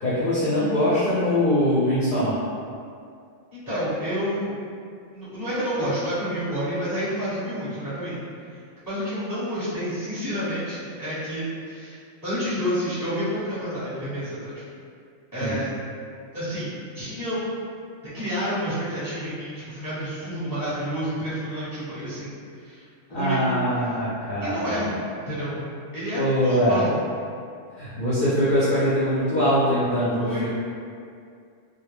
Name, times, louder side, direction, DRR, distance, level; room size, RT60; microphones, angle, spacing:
voice 1, 0.0-2.4 15.4-15.6 23.1-24.8 26.1-26.9 27.8-30.5, equal, 55° left, -10 dB, 0.6 m, -22 dB
voice 2, 3.5-4.5 5.1-8.2 8.8-14.6 15.3-15.7 16.3-17.4 18.1-22.8 23.1-24.0 24.4-25.6 25.9-27.0 30.2-30.5, equal, 20° left, -12 dB, 0.7 m, -29 dB
2.2 x 2.2 x 3.2 m, 2.3 s
omnidirectional pair, 1.4 m